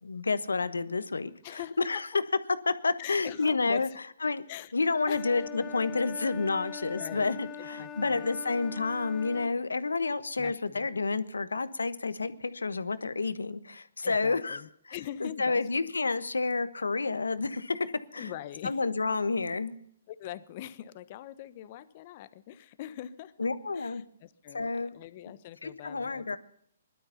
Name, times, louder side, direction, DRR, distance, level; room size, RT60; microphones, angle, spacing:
voice 1, 0.0-2.1 2.7-3.9 4.2-4.4 4.7-14.6 15.2-18.3 18.6-19.8 23.4-24.0 24.5-25.0 25.6-26.4, left 3 dB, 85° left, 14 dB, 1.2 m, -30 dB
voice 2, 1.4-2.0 3.0-3.9 4.5-4.7 5.1-5.4 6.9-8.3 10.4-10.9 14.0-15.9 18.1-18.8 20.1-23.3 23.7-26.4, left 12 dB, 40° left, 14 dB, 1.1 m, -43 dB
Wind instrument woodwind instrument, 4.9-9.6, left 6 dB, 25° left, 1.6 m, -42 dB
20.5 x 12.5 x 5.7 m, 0.67 s
hypercardioid pair, 130°, 0 cm